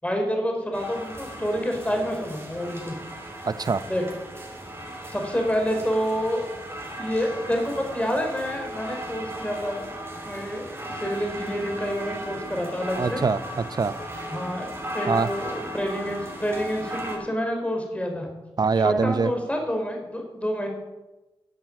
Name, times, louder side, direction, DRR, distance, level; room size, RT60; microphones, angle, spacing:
voice 1, 0.0-3.0 3.9-4.0 5.1-6.4 7.0-9.9 10.2-13.2 14.3-14.7 14.9-18.3 18.7-20.7, equal, 15° left, 2 dB, 4.8 m, -28 dB
sound 1, 0.7-17.2, right 1 dB, 25° right, 5.1 m, -36 dB
voice 2, 3.5-3.8 13.0-13.9 15.1-15.3 18.6-19.3, right 4 dB, 45° right, 15 dB, 0.7 m, -23 dB
13.0 x 7.9 x 7.7 m, 1.0 s
cardioid pair, 50°, 9 cm